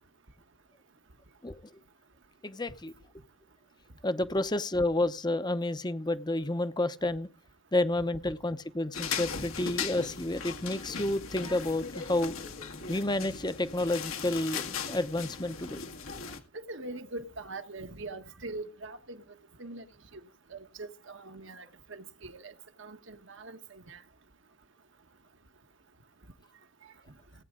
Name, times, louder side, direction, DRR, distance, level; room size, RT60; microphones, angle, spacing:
voice 1, 2.4-2.9 4.0-7.3 7.7-12.4 12.9-15.8, left 1 dB, 20° left, 0.8 m, -30 dB
sound 1, 8.9-16.4, left 6 dB, 80° left, 1.9 m, -38 dB
voice 2, 16.7-19.2 19.6-19.8 20.5-21.6 21.9-22.5 22.8-24.0, right 2 dB, 65° right, 1.2 m, -42 dB
19.0 x 9.2 x 3.8 m
head